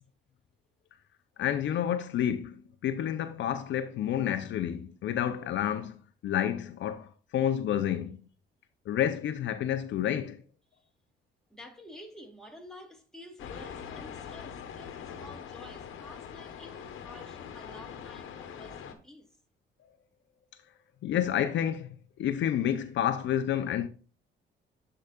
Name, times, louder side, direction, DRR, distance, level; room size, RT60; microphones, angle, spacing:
voice 1, 1.4-8.2 8.9-10.4 21.0-23.9, left 10 dB, 70° left, 0.6 m, -29 dB
voice 2, 11.5-19.3, left 1 dB, 5° left, 2.2 m, -50 dB
sound 1, 13.4-19.0, left 8 dB, 85° left, 1.0 m, -43 dB
12.0 x 4.8 x 2.3 m
cardioid pair, 90°, 20 cm